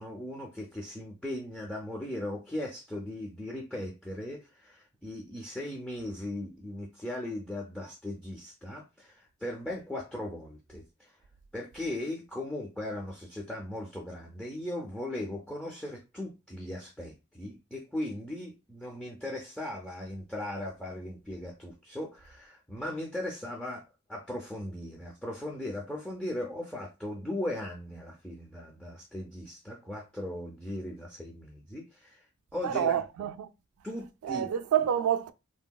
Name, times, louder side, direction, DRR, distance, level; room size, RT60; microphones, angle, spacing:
voice 1, 0.0-11.2 11.5-32.2 32.5-33.0 33.8-34.5, left 1 dB, 5° left, 0.3 m, -38 dB
voice 2, 32.6-33.5 34.2-35.3, right 9 dB, 85° right, 0.3 m, -28 dB
3.0 x 2.7 x 2.2 m
head